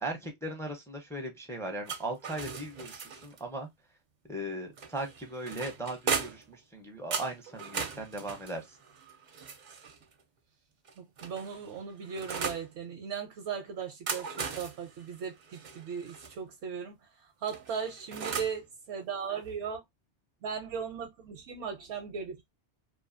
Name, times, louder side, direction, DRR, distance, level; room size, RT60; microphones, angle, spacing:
voice 1, 0.0-3.7 4.2-8.8, right 1 dB, 5° left, 0.4 m, -38 dB
sound 1, 1.8-3.4 4.8-6.5 7.1-10.0 10.8-12.7 13.8-16.3 17.5-18.6, right 5 dB, 55° right, 0.5 m, -38 dB
voice 2, 11.0-19.8 20.4-22.5, right 6 dB, 75° right, 0.9 m, -38 dB
2.5 x 2.3 x 2.4 m
omnidirectional pair, 1.2 m